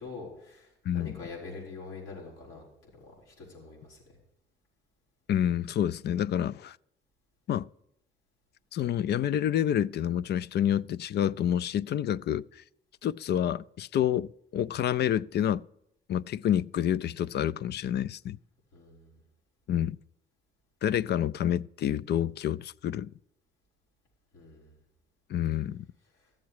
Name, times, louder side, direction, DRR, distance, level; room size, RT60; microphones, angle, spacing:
voice 1, 0.0-2.7 2.9-4.0 18.7-19.1 24.3-24.7, left 4 dB, 85° left, 5.3 m, -44 dB
voice 2, 0.9-1.2 5.3-6.8 7.5-7.7 8.7-12.5 13.0-15.6 16.1-18.4 19.7-20.0 20.8-23.1 25.3-25.9, left 10 dB, 60° left, 0.4 m, -28 dB
13.5 x 7.4 x 4.8 m
cardioid pair, 90°, 20 cm